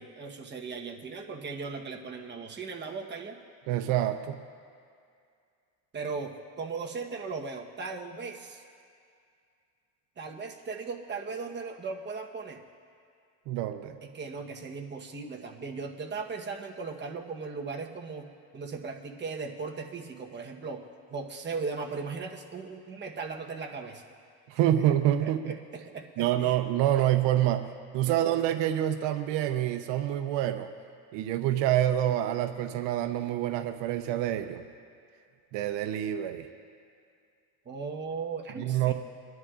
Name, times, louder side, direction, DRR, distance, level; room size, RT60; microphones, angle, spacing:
voice 1, 0.0-3.4 5.9-8.6 10.2-12.6 14.0-24.0 25.2-26.6 37.6-38.9, right 4 dB, 25° right, 1 dB, 1.1 m, -38 dB
voice 2, 3.7-4.4 13.5-14.0 24.5-25.5 26.2-30.7 31.1-34.6 35.5-36.5 38.6-38.9, right 12 dB, 75° right, 8 dB, 0.8 m, -27 dB
23.0 x 11.0 x 2.5 m, 2.3 s
cardioid pair, 125°, 43 cm